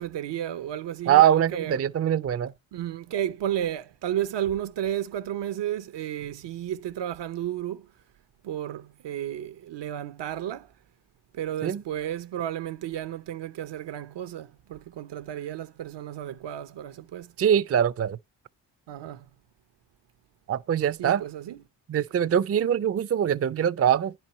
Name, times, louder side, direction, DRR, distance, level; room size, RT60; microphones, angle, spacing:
voice 1, 0.0-1.8 2.7-7.9 8.4-10.7 11.3-17.3 18.9-19.3 21.0-21.6, right 11 dB, 75° right, 0.8 m, -32 dB
voice 2, 1.1-2.5 11.6-11.8 17.4-18.2 20.5-21.2 21.9-24.1, right 10 dB, 35° right, 0.5 m, -23 dB
10.5 x 4.4 x 5.6 m
cardioid pair, 70°, 43 cm